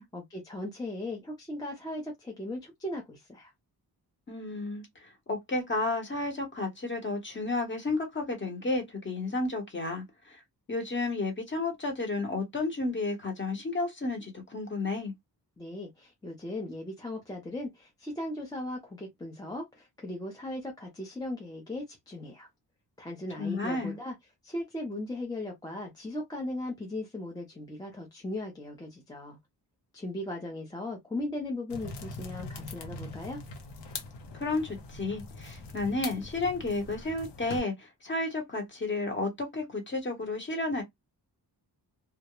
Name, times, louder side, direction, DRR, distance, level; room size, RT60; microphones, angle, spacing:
voice 1, 0.1-3.5 15.6-22.5 23.0-24.1 24.4-29.4 29.9-33.4, left 1 dB, 10° left, 0.5 m, -38 dB
voice 2, 4.3-10.4 10.7-15.1 23.4-24.0 34.4-40.8, left 2 dB, 30° left, 0.9 m, -32 dB
sound 1, 31.7-37.6, left 3 dB, 85° left, 0.8 m, -42 dB
2.3 x 2.0 x 2.9 m
wide cardioid pair, 160°, 40 cm